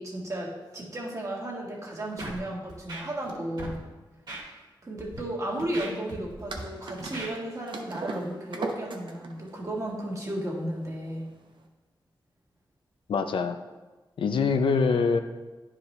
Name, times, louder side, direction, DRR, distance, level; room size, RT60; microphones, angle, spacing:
voice 1, 0.0-3.8 4.8-11.3, right 1 dB, 40° right, -2 dB, 1.7 m, -34 dB
Scratching (performance technique), 2.2-2.4 2.7-3.3 3.6-3.8 4.3-4.4 5.0-5.2 5.6-6.6 7.0-7.3, right 2 dB, 55° right, 2.0 m, -38 dB
sound 1, 6.5-11.6, right 3 dB, 75° right, 0.8 m, -39 dB
voice 2, 13.1-13.6 14.2-15.2, left 5 dB, 90° left, 8 dB, 0.5 m, -24 dB
10.0 x 4.8 x 3.2 m, 1.2 s
wide cardioid pair, 90°, 8 cm